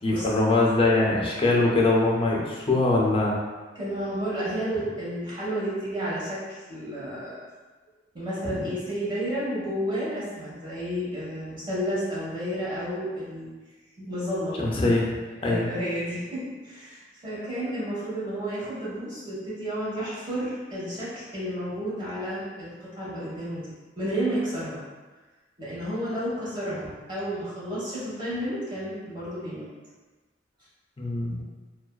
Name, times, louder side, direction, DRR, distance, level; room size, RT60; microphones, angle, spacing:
voice 1, 0.0-3.4 14.6-15.1 15.4-15.7 31.0-31.4, left 2 dB, 30° left, -3 dB, 0.4 m, -22 dB
voice 2, 3.7-7.4 8.1-13.6 14.0-14.6 15.4-23.7 24.0-24.8 25.6-29.7, equal, 25° right, -8 dB, 0.9 m, -31 dB
2.5 x 2.2 x 2.2 m, 1.3 s
head